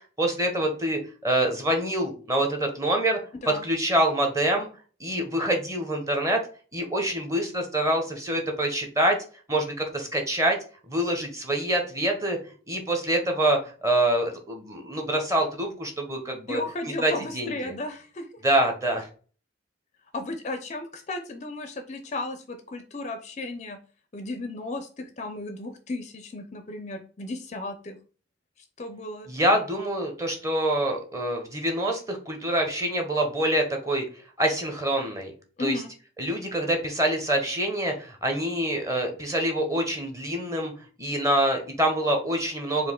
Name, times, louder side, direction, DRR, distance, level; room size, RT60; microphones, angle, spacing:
voice 1, 0.2-3.2 3.5-4.7 5.0-6.4 6.7-9.2 9.5-10.6 10.9-12.4 12.7-16.6 17.0-17.7 18.4-19.1 29.3-34.0 34.4-35.3 35.6-35.8 36.2-40.7 41.0-42.9, right 1 dB, 15° right, 3 dB, 0.9 m, -25 dB
voice 2, 16.5-18.3 20.1-23.8 24.1-28.0 28.8-29.3 35.6-35.9, left 2 dB, 35° left, 7 dB, 0.4 m, -34 dB
4.6 x 2.6 x 3.6 m, 0.39 s
head